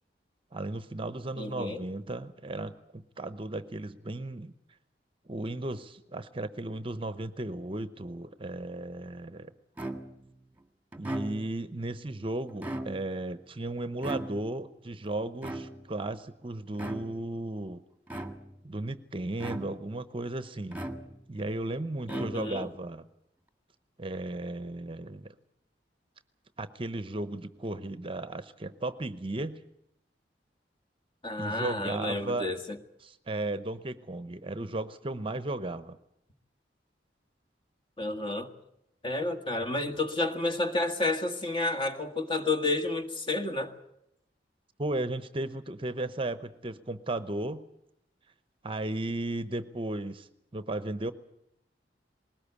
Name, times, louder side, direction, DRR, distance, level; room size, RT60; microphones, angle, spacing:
voice 1, 0.5-4.5 5.3-9.5 11.0-17.8 18.6-20.8 21.3-23.1 24.0-25.3 26.6-29.6 31.4-32.5 33.0-36.0 44.8-47.7 48.6-50.3 50.5-51.1, right 2 dB, 30° right, 13 dB, 0.9 m, -35 dB
voice 2, 1.4-1.8 22.1-22.7 31.2-32.8 38.0-38.5 39.0-43.7, left 2 dB, 30° left, 7 dB, 1.8 m, -30 dB
sound 1, 9.8-10.3 10.9-11.7 12.5-13.3 14.0-14.7 15.4-16.1 16.7-17.3 18.1-18.7 19.4-20.0 20.7-21.4 22.0-22.8, right 1 dB, 10° right, 1.7 m, -38 dB
20.5 x 19.0 x 8.4 m, 0.80 s
head